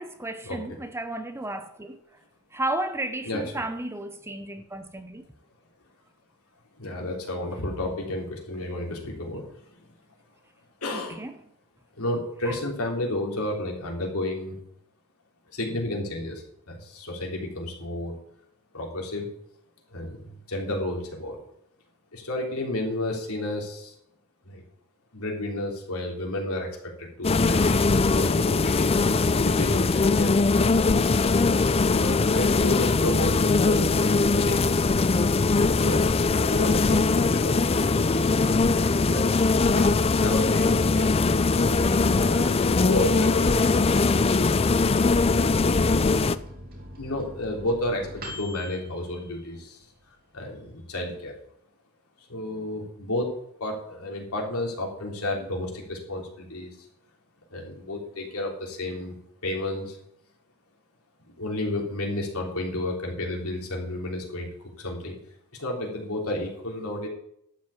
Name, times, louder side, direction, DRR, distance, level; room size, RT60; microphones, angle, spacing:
voice 1, 0.0-2.0 2.5-5.3 10.9-11.3 12.4-12.6, right 1 dB, 10° right, 0.8 m, -33 dB
voice 2, 6.8-9.4 9.8-9.9 10.8-11.2 12.0-14.6 15.5-18.1 18.7-19.3 19.9-21.4 22.1-23.9 24.4-24.6 25.1-29.1 29.4-30.3 31.3-34.9 35.7-38.4 38.7-39.3 39.6-41.1 41.5-43.9 47.0-49.9 50.3-51.3 52.3-53.3 53.6-56.7 57.5-59.2 59.4-60.0 61.4-64.5 64.8-65.2 65.5-67.1, left 1 dB, 75° left, 3.4 m, -32 dB
sound 1, 27.2-46.4, left 3 dB, 25° left, 0.4 m, -21 dB
Microwave oven, 44.0-50.1 50.5-50.6 50.8-51.5, equal, 40° right, 2.9 m, -43 dB
12.0 x 6.1 x 8.3 m
head